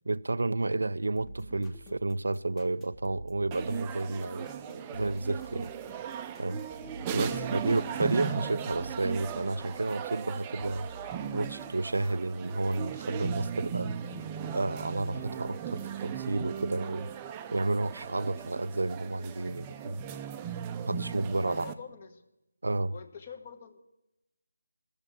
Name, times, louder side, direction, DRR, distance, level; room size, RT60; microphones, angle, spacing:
voice 1, 0.1-5.7 6.4-6.6 7.1-10.9 11.3-13.9 14.5-17.1 17.5-20.0 20.9-21.7 22.6-22.9, right 2 dB, 75° right, 0.4 m, -31 dB
sound 1, 1.2-10.3 10.6-12.2 13.0-13.1, right 2 dB, 10° left, 0.9 m, -50 dB
sound 2, 3.5-21.7, right 8 dB, 15° right, 0.5 m, -38 dB
voice 2, 21.5-22.2 22.9-23.8, left 6 dB, 40° left, 1.2 m, -45 dB
13.5 x 7.0 x 9.5 m
figure-of-eight pair, 160°, 0 cm